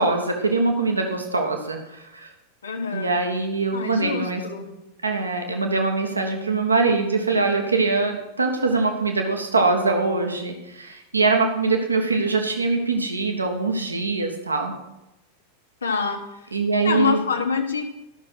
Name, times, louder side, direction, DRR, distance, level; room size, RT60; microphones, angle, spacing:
voice 1, 0.0-2.3 2.9-4.4 5.0-14.7 16.5-17.2, right 3 dB, 80° right, 3 dB, 1.4 m, -23 dB
voice 2, 2.6-3.1 3.7-4.7 15.8-16.3 16.8-17.8, left 5 dB, 70° left, 4 dB, 1.3 m, -25 dB
13.5 x 6.5 x 6.2 m, 0.95 s
figure-of-eight pair, 90°, 0 cm